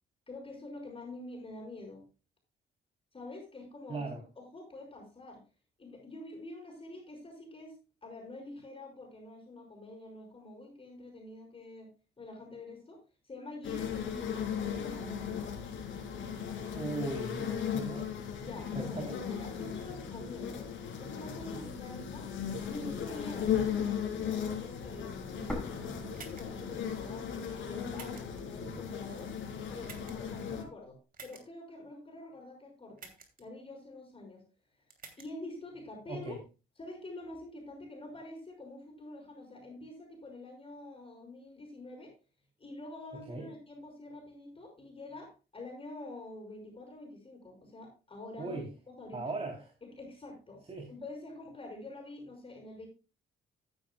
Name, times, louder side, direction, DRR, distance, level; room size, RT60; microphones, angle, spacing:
voice 1, 0.3-2.1 3.1-4.1 4.3-5.4 5.8-11.9 12.2-13.0 13.2-15.5 18.4-20.7 21.0-22.3 22.6-29.3 29.7-33.1 33.4-34.4 35.2-36.4 36.8-42.1 42.6-49.4 49.8-50.6 50.9-52.9, left 2 dB, 30° left, 0 dB, 5.7 m, -46 dB
voice 2, 3.9-4.2 16.7-18.2 18.7-19.2 36.1-36.4 43.3-43.5 48.4-48.7 49.1-49.7 50.7-50.9, right 3 dB, 30° right, 1 dB, 3.4 m, -38 dB
sound 1, 13.6-30.6, left 8 dB, 75° left, 3.9 m, -37 dB
sound 2, 25.5-27.4 27.7-27.8 28.5-29.5, equal, 5° left, 5.8 m, -43 dB
sound 3, 26.1-26.6 27.9-28.4 29.8-30.3 31.1-31.4 33.0-33.4 34.9-35.3, right 5 dB, 45° right, 2.9 m, -49 dB
13.5 x 10.5 x 2.3 m, 0.31 s
cardioid pair, 90°, 20 cm